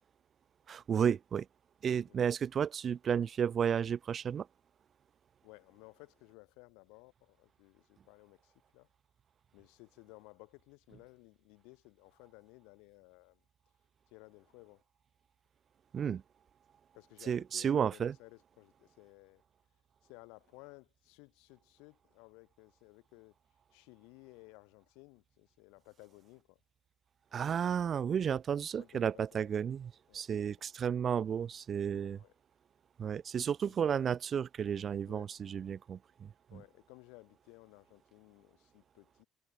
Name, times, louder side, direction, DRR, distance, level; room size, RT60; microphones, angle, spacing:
voice 1, 0.7-1.5 1.8-4.5 15.9-16.2 17.3-18.1 27.3-32.2 33.0-36.6, right 8 dB, 45° right, 0.3 m, -32 dB
voice 2, 5.4-8.9 9.5-13.4 14.1-14.8 16.9-19.4 20.0-23.3 23.7-26.6 28.8-29.7 30.1-30.5 31.9-32.3 33.6-33.9 35.0-35.3 35.9-36.0 36.5-39.3, left 30 dB, 80° left, 3.7 m, -57 dB
supercardioid pair, 70°, 0 cm